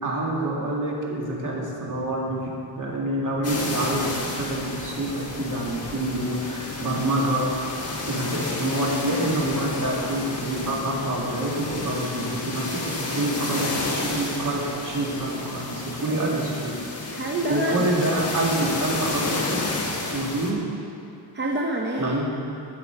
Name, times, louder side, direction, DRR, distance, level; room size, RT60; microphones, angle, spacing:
voice 1, 0.0-2.5 2.8-7.7 8.0-16.7 17.5-19.7 20.1-20.6 22.0-22.3, right 1 dB, 40° right, -3 dB, 2.1 m, -27 dB
sound 1, 3.4-20.5, left 3 dB, 30° left, 1.3 m, -31 dB
voice 2, 16.0-16.5 17.1-17.9 21.3-22.3, right 2 dB, 25° right, -1 dB, 0.6 m, -28 dB
13.5 x 6.0 x 4.6 m, 2.8 s
cardioid pair, 115°, 48 cm